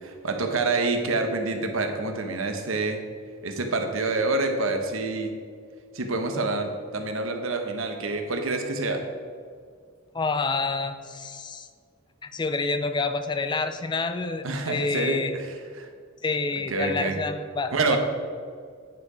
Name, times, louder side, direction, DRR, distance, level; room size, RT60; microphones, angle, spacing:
voice 1, 0.0-3.0 3.4-5.3 5.9-9.1 14.4-15.9 16.7-17.2 17.7-18.0, right 3 dB, 85° right, 5 dB, 1.0 m, -27 dB
voice 2, 10.1-11.7 12.2-15.3 16.2-18.0, left 3 dB, 20° left, 9 dB, 0.4 m, -28 dB
9.5 x 4.8 x 4.9 m, 2.1 s
head